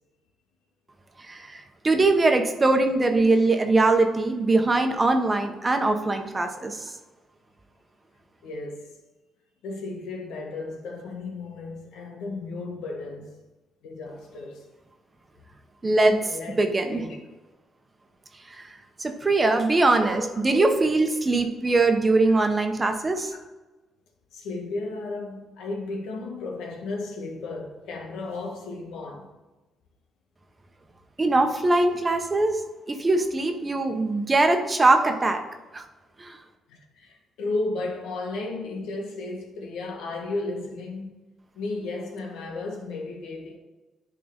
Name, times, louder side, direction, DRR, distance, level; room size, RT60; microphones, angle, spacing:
voice 1, 1.2-6.8 15.8-17.0 18.5-18.7 19.0-23.3 31.2-35.4 35.7-35.9 36.2-36.4, right 2 dB, 25° right, 1.0 m, -22 dB
voice 2, 8.4-8.9 9.6-13.3 13.8-14.6 16.2-16.5 16.9-17.2 22.2-22.3 24.3-29.3 36.7-41.2 41.5-43.6, left 3 dB, 90° left, 1.6 m, -34 dB
10.5 x 3.8 x 5.3 m
cardioid pair, 90°, 0 cm